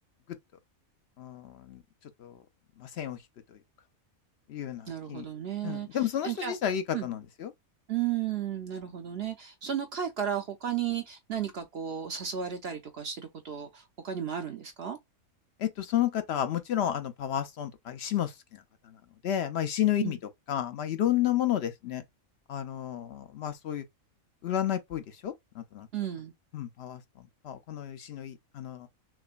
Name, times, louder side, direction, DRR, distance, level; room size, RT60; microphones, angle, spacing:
voice 1, 1.2-1.8 2.2-2.4 2.8-3.2 3.5-3.6 4.5-5.3 5.6-7.5 15.6-19.0 19.2-20.2 20.5-22.0 22.5-23.8 24.4-25.9 26.5-28.9, left 11 dB, 60° left, 0.8 m, -31 dB
voice 2, 4.9-5.9 6.2-6.5 6.9-7.1 7.9-15.0 20.0-20.2 25.9-26.3, right 9 dB, 60° right, 0.7 m, -34 dB
5.9 x 2.2 x 2.4 m
omnidirectional pair, 1.4 m